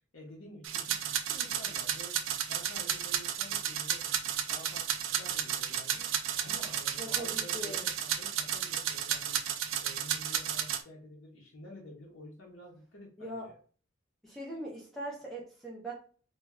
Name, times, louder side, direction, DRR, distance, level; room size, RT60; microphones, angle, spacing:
voice 1, 0.1-2.2 2.4-4.9 5.2-6.1 6.4-9.3 9.8-13.5, left 1 dB, 80° left, -2 dB, 0.7 m, -50 dB
sound 1, 0.6-10.8, right 9 dB, 80° right, 0.3 m, -33 dB
voice 2, 7.0-7.8 13.2-13.5 14.2-15.9, right 1 dB, ahead, -4 dB, 0.4 m, -41 dB
2.1 x 2.1 x 3.5 m, 0.42 s
head